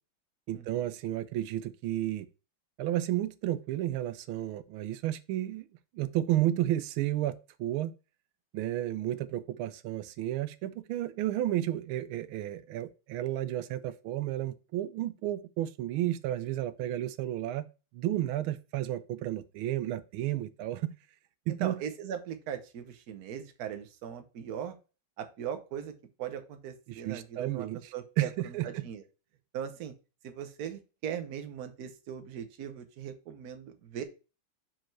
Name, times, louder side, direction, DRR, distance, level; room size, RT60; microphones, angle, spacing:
voice 1, 0.5-2.3 2.8-5.6 5.9-7.9 8.5-17.7 17.9-20.9 21.5-21.7 26.9-27.8 28.2-28.8, right 13 dB, 85° right, 1.4 m, -32 dB
voice 2, 21.6-24.8 25.2-29.0 29.5-29.9 30.2-34.0, right 9 dB, 55° right, 1.3 m, -39 dB
6.0 x 5.0 x 4.5 m
omnidirectional pair, 2.2 m